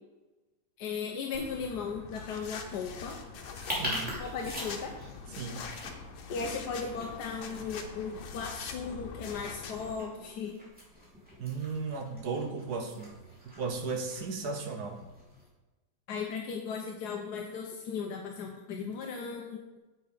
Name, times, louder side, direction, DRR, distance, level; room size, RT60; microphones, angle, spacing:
voice 1, 0.8-3.2 4.2-4.9 6.3-10.6 16.1-19.8, left 5 dB, 65° left, 1 dB, 1.2 m, -37 dB
sound 1, 1.3-9.9, left 5 dB, 90° left, 1.7 m, -44 dB
sound 2, 3.3-15.5, left 1 dB, 5° right, 2.7 m, -44 dB
voice 2, 3.7-4.1 5.4-5.6 11.4-13.2 13.4-15.0, right 4 dB, 60° right, 4 dB, 1.2 m, -35 dB
7.7 x 6.6 x 5.0 m, 1.1 s
omnidirectional pair, 2.1 m